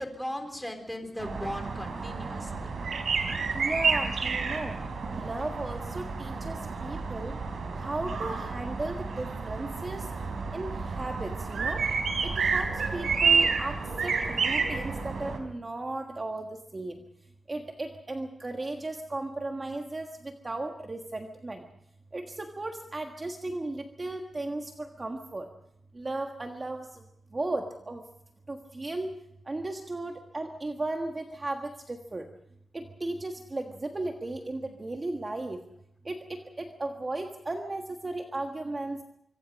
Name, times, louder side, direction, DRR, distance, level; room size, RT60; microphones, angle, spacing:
voice 1, 0.0-2.7, equal, 5° left, 5 dB, 3.7 m, -37 dB
sound 1, 1.2-15.4, right 5 dB, 70° right, 4.0 m, -30 dB
voice 2, 3.5-4.7 5.1-7.4 7.8-10.0 10.5-11.8 12.2-13.8 14.0-16.5 16.7-16.9 17.5-21.6 22.1-25.5 25.9-27.0 27.3-28.0 28.5-29.1 29.5-32.3 32.7-35.6 36.0-39.0, right 2 dB, 25° right, 3 dB, 1.5 m, -35 dB
25.5 x 25.0 x 5.2 m, 0.76 s
wide cardioid pair, 160°, 0 cm